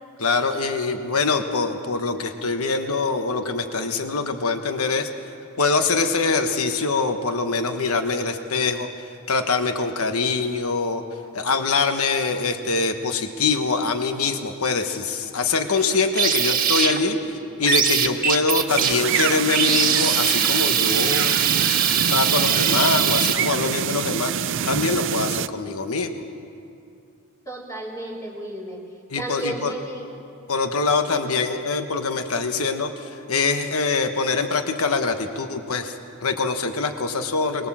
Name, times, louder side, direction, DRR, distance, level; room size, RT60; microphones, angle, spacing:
voice 1, 0.2-5.1 5.6-8.9 9.3-11.0 11.3-17.2 17.6-21.4 22.1-26.2 29.1-29.7 30.5-36.0 36.2-37.7, left 4 dB, 75° left, 7 dB, 1.2 m, -24 dB
sound 1, 15.7-17.2 17.6-23.3, right 8 dB, 40° right, 1.6 m, -22 dB
sound 2, 18.7-25.5, right 8 dB, 60° right, 0.5 m, -26 dB
voice 2, 27.5-28.8 29.2-30.1 31.1-31.3, right 1 dB, 15° left, -3 dB, 3.7 m, -33 dB
23.5 x 20.5 x 7.4 m, 2.5 s
head